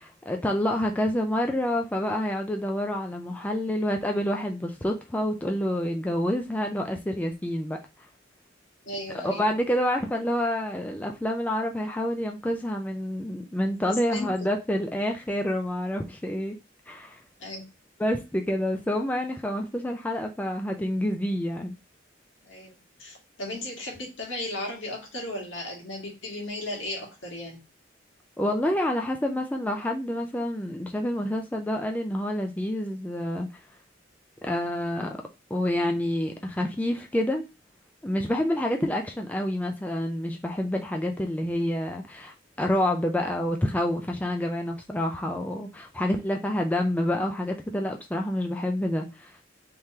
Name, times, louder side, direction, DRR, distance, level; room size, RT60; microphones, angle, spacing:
voice 1, 0.0-7.8 9.2-16.6 16.9-17.2 18.0-21.8 28.4-33.5 34.4-35.2 35.5-37.4 38.0-49.4, left 1 dB, 10° left, 0.4 m, -28 dB
voice 2, 8.8-9.4 13.9-14.5 17.4-17.7 22.4-27.6, left 1 dB, 75° left, 1.7 m, -36 dB
3.6 x 3.2 x 2.8 m
head